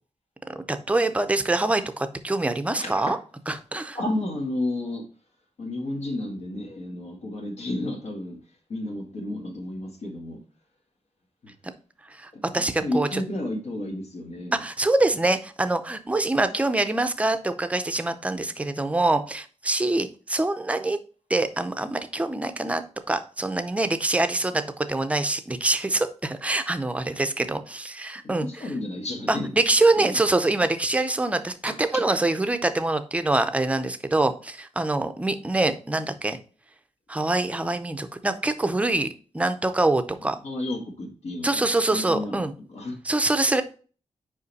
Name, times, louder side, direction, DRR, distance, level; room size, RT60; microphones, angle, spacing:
voice 1, 0.5-3.2 3.5-4.0 12.1-13.2 14.5-21.0 21.3-28.5 29.3-36.4 37.1-39.1 39.3-40.4 41.4-42.5 43.0-43.6, right 2 dB, 10° right, 9 dB, 0.6 m, -25 dB
voice 2, 2.7-3.1 3.9-5.1 5.6-8.4 8.7-10.4 11.4-11.5 12.3-14.6 28.2-29.5 29.9-30.2 31.6-31.9 40.2-43.0, left 1 dB, 70° left, -1 dB, 1.8 m, -32 dB
5.4 x 5.0 x 4.0 m, 0.38 s
wide cardioid pair, 180°, 12 cm